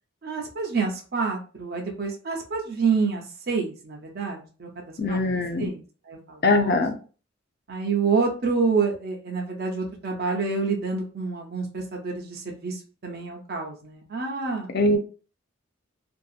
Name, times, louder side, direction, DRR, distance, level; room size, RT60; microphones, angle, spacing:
voice 1, 0.2-5.2 5.6-6.8 7.7-14.7, right 4 dB, 50° right, 0 dB, 0.5 m, -28 dB
voice 2, 5.0-5.7 6.4-6.9 14.7-15.0, left 2 dB, 50° left, 6 dB, 0.4 m, -22 dB
2.6 x 2.3 x 2.4 m, 0.37 s
head